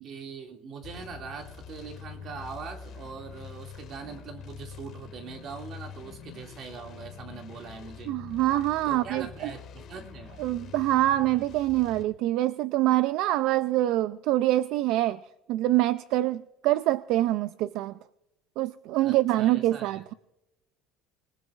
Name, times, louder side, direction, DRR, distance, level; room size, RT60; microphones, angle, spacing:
voice 1, 0.0-8.1 8.8-10.3 19.0-20.0, right 5 dB, 35° right, 3 dB, 2.4 m, -42 dB
sound 1, 0.8-12.0, left 7 dB, 40° left, 2.1 m, -45 dB
voice 2, 8.1-9.3 10.4-15.2 15.5-17.9 18.6-20.1, right 15 dB, 55° right, 13 dB, 0.4 m, -25 dB
26.0 x 19.5 x 2.5 m, 0.93 s
cardioid pair, 165°, 0 cm